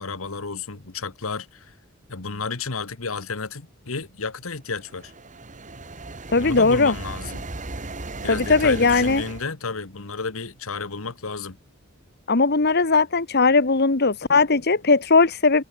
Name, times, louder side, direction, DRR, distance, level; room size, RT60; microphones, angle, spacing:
voice 1, 0.0-1.7 2.1-5.1 6.4-7.4 8.2-11.6, left 4 dB, 80° left, 1.5 m, -32 dB
sound 1, 4.8-9.5, right 2 dB, 35° right, 2.0 m, -36 dB
voice 2, 6.3-6.9 8.3-9.2 12.3-15.6, left 4 dB, 50° left, 1.4 m, -18 dB
head